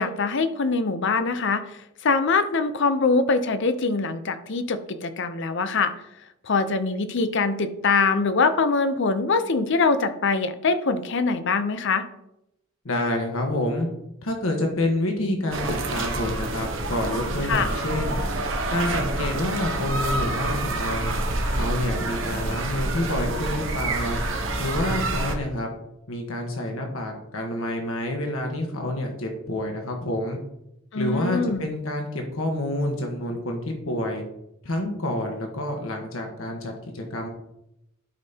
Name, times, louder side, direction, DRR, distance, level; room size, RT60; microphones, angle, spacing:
voice 1, 0.0-1.7 2.0-5.9 6.4-12.1 17.5-17.7 30.9-31.6, left 4 dB, 60° left, 10 dB, 0.7 m, -23 dB
voice 2, 12.8-13.9 14.2-18.2 18.7-21.2 21.5-24.2 24.6-25.7 26.1-30.4 31.0-34.2 34.6-37.3, left 1 dB, 80° left, 2 dB, 1.3 m, -28 dB
sound 1, 15.5-25.4, right 2 dB, 65° right, 1.0 m, -27 dB
11.5 x 5.4 x 2.9 m, 0.85 s
head